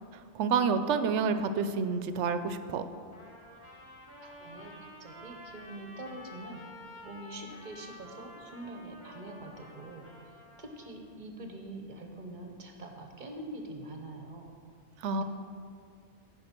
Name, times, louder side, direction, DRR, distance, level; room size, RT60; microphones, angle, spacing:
voice 1, 0.3-2.9 15.0-15.2, right 5 dB, 90° right, 10 dB, 0.9 m, -28 dB
Trumpet, 3.1-10.9, left 1 dB, 25° left, 1.5 m, -50 dB
voice 2, 4.2-6.6 7.0-14.5, right 1 dB, 45° right, 3 dB, 1.0 m, -44 dB
14.5 x 5.3 x 4.4 m, 2.3 s
omnidirectional pair, 1.2 m